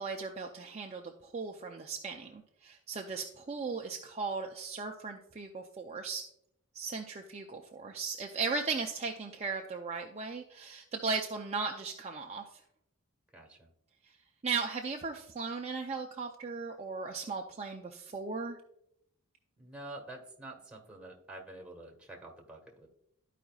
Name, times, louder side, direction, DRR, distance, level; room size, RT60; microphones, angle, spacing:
voice 1, 0.0-6.2 6.7-12.6 14.1-14.2 14.4-18.6, right 4 dB, 30° right, 2 dB, 0.5 m, -37 dB
voice 2, 13.3-13.7 19.6-22.9, right 2 dB, 5° right, 0 dB, 1.4 m, -48 dB
13.0 x 5.0 x 2.3 m, 0.76 s
head